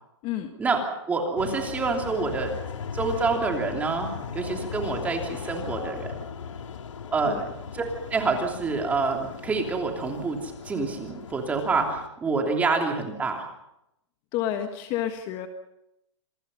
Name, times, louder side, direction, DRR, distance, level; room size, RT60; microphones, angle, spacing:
voice 1, 1.1-2.5 2.9-4.1 4.3-6.1 7.1-7.4 7.7-7.8 8.1-13.5, right 4 dB, 10° right, 2 dB, 3.2 m, -27 dB
sound 1, 1.4-12.1, left 6 dB, 85° left, 2.5 m, -38 dB
voice 2, 14.3-15.5, left 11 dB, 30° left, 6 dB, 1.5 m, -29 dB
27.5 x 20.5 x 5.6 m, 0.83 s
hypercardioid pair, 160°, 15 cm